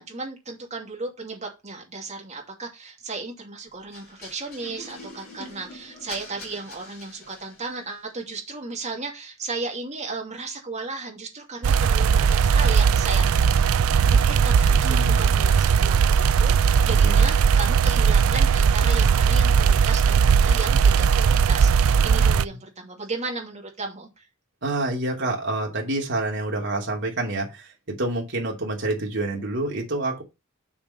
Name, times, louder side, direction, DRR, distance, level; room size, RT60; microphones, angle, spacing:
voice 1, 0.0-13.3 14.2-24.3, right 3 dB, 35° right, 2.7 m, -35 dB
sound 1, 3.9-7.9, left 2 dB, 50° left, 2.8 m, -43 dB
sound 2, 11.6-22.4, right 6 dB, 85° right, 0.4 m, -18 dB
voice 2, 14.8-15.3 16.9-17.3 24.6-30.2, right 2 dB, 60° right, 2.8 m, -28 dB
7.2 x 4.7 x 5.6 m
head